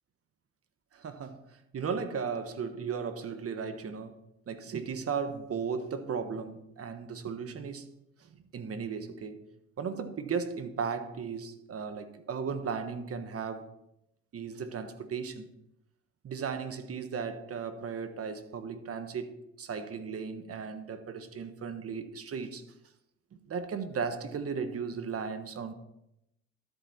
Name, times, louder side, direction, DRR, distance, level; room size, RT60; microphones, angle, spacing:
voice 1, 0.9-1.4 1.7-4.2 4.5-7.9 8.5-9.5 9.8-13.7 14.3-15.5 16.2-19.3 19.6-22.6 23.3-25.7, right 6 dB, 50° right, 1.3 m, -36 dB
12.5 x 8.1 x 4.3 m
cardioid pair, 90°, 30 cm